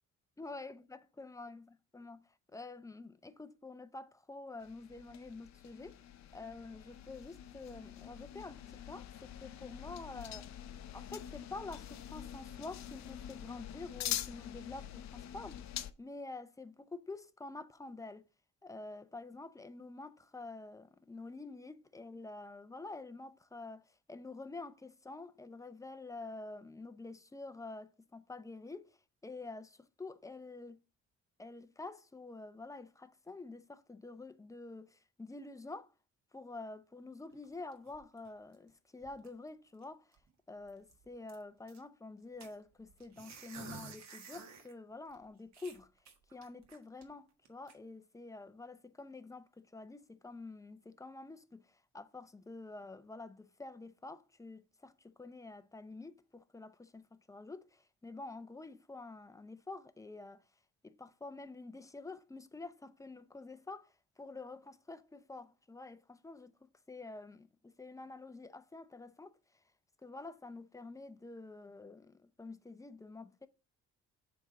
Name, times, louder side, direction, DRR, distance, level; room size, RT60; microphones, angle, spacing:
voice 1, 0.4-1.7 1.9-6.0 6.3-10.5 10.9-15.6 16.0-18.2 18.6-29.0 29.2-30.8 31.4-35.9 36.3-40.2 40.5-45.9 46.3-60.4 60.8-69.6 70.0-73.5, left 3 dB, 10° left, 0.6 m, -48 dB
sound 1, 4.6-15.9, left 11 dB, 65° left, 0.6 m, -45 dB
sound 2, 37.3-38.7 39.0-39.5 39.8-39.9 40.1-40.3 40.7-41.8 42.4-44.7 45.1-45.2 45.5-47.0 47.4-47.7, right 5 dB, 65° right, 1.4 m, -52 dB
7.2 x 3.5 x 4.9 m
cardioid pair, 90°, 30 cm